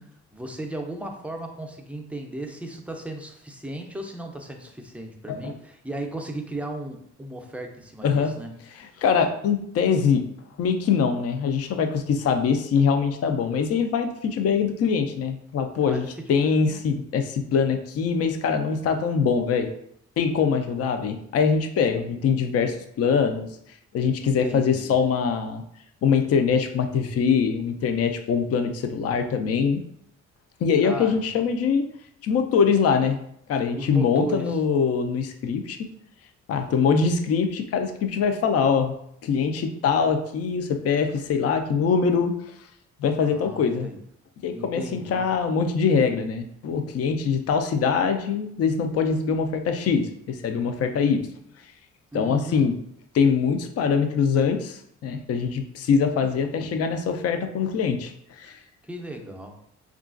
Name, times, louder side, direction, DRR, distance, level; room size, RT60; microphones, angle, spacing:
voice 1, 0.3-8.5 15.9-16.1 24.2-24.9 30.8-31.3 33.7-34.6 43.2-44.0 44.5-45.3 52.1-52.7 58.9-59.6, right 1 dB, 5° right, 2 dB, 0.5 m, -35 dB
voice 2, 9.0-10.2 10.6-19.7 20.2-23.5 23.9-25.6 26.0-29.8 30.6-31.9 32.2-33.2 33.5-35.8 36.5-38.9 39.2-42.3 43.0-43.9 44.4-51.2 52.1-52.7 53.2-58.6, left 6 dB, 55° left, 7 dB, 0.4 m, -23 dB
3.6 x 2.4 x 2.4 m, 0.70 s
cardioid pair, 90°, 30 cm